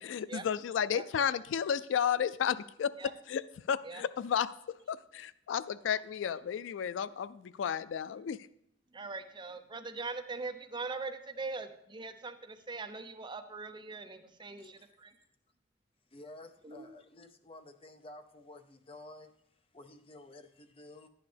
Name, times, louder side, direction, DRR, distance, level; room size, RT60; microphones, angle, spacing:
voice 1, 0.0-2.9 3.3-3.4 3.7-4.5 4.9-8.5, left 8 dB, 85° left, 17 dB, 0.3 m, -32 dB
voice 2, 8.9-15.2 16.6-16.9, right 3 dB, 25° right, 8 dB, 0.6 m, -41 dB
voice 3, 16.1-19.3 19.7-21.1, left 2 dB, 30° left, 8 dB, 0.7 m, -52 dB
11.5 x 9.4 x 3.4 m, 0.74 s
head